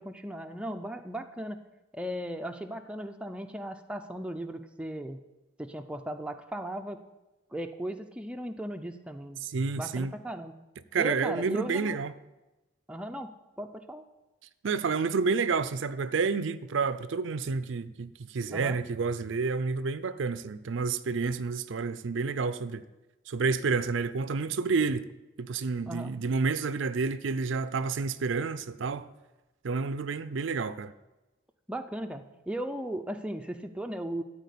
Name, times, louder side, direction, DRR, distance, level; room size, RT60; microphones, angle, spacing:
voice 1, 0.0-1.6 1.9-5.2 5.6-7.0 7.5-9.4 9.8-10.5 11.0-12.0 12.9-14.0 18.5-18.8 25.9-26.1 31.7-34.2, right 1 dB, 5° right, 0.5 m, -37 dB
voice 2, 9.4-10.1 10.9-12.1 14.6-22.8 23.3-25.1 25.4-29.1 29.6-30.9, right 4 dB, 70° right, 0.5 m, -29 dB
13.5 x 4.5 x 8.4 m
head